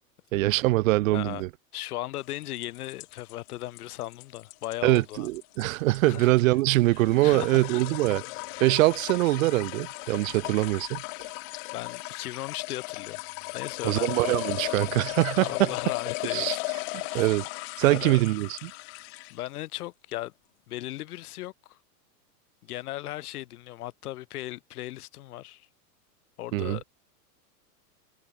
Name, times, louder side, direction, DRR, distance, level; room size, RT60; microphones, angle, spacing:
voice 1, 0.3-1.5 4.8-8.2 8.6-11.0 13.8-15.7 16.3-16.6 16.9-17.5 17.8-18.7 26.5-26.8, right 19 dB, 55° right, 1.2 m, -23 dB
voice 2, 1.1-1.4 1.7-5.3 6.1-6.4 7.2-7.6 8.5-8.7 11.7-13.2 13.5-14.4 15.4-17.3 17.9-18.2 19.3-20.3 20.7-21.8 22.6-25.7 26.4-26.8, left 16 dB, 65° left, 1.7 m, -37 dB
sound 1, 2.3-19.5, left 32 dB, 40° left, 1.3 m, -36 dB
supercardioid pair, 150°, 47 cm